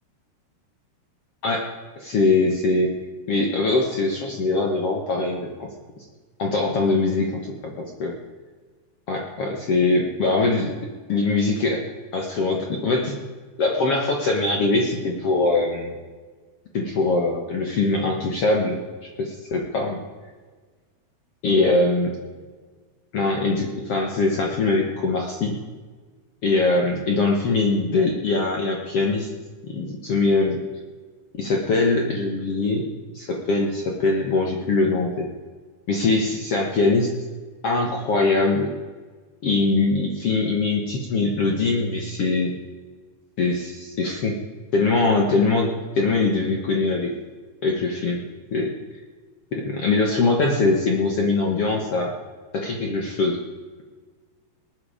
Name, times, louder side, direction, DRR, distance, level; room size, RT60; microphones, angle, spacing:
voice 1, 2.0-2.9 3.3-5.7 6.4-8.2 9.1-10.7 11.1-11.8 12.1-13.2 13.6-16.0 16.7-18.8 19.2-20.0 21.4-22.1 23.1-25.6 26.4-29.3 29.6-30.6 31.4-32.8 33.1-35.3 35.9-37.1 37.6-38.7 39.4-42.5 43.4-44.4 44.7-47.1 47.6-48.2 48.5-48.7 49.5-52.1 52.5-53.4, left 3 dB, 65° left, 1 dB, 1.4 m, -22 dB
19.5 x 10.0 x 5.0 m, 1.4 s
omnidirectional pair, 4.7 m